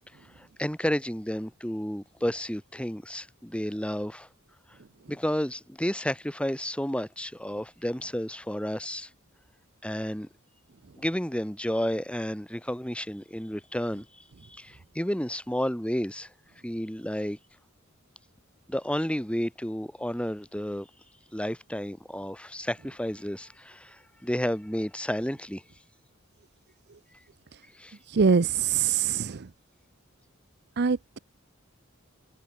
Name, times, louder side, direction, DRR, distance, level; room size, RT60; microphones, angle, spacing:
voice 1, 0.4-4.3 5.1-9.1 9.8-10.3 10.9-14.2 14.5-16.3 16.6-17.4 18.7-20.9 21.3-25.6 27.8-28.0, equal, 5° left, 3.3 m, -31 dB
voice 2, 28.1-29.4 30.8-31.2, right 5 dB, 55° right, 0.6 m, -23 dB
head